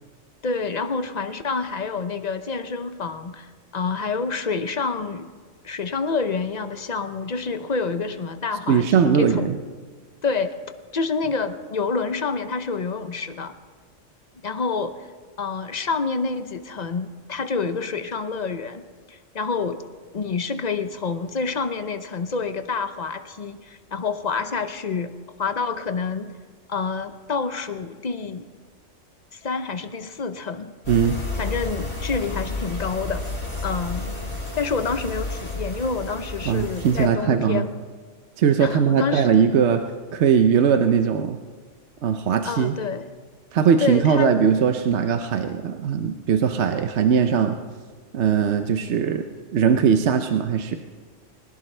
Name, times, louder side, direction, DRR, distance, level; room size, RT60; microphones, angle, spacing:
voice 1, 0.4-5.3 5.6-9.5 10.2-10.5 10.9-13.6 14.4-15.1 15.4-19.8 20.1-26.3 26.7-28.5 29.3-30.7 31.4-33.2 33.6-34.2 34.6-37.7 38.6-39.3 42.4-43.1 43.8-44.4, left 4 dB, 40° left, 10 dB, 0.8 m, -28 dB
voice 2, 8.7-9.6 30.9-31.2 36.5-37.7 38.4-39.8 40.1-41.4 42.0-42.7 43.5-47.6 48.1-49.3 49.5-50.8, right 7 dB, 65° right, 7 dB, 1.0 m, -20 dB
sound 1, 30.8-37.1, left 2 dB, 60° left, 5.7 m, -31 dB
21.0 x 19.0 x 3.3 m, 1.5 s
omnidirectional pair, 1.3 m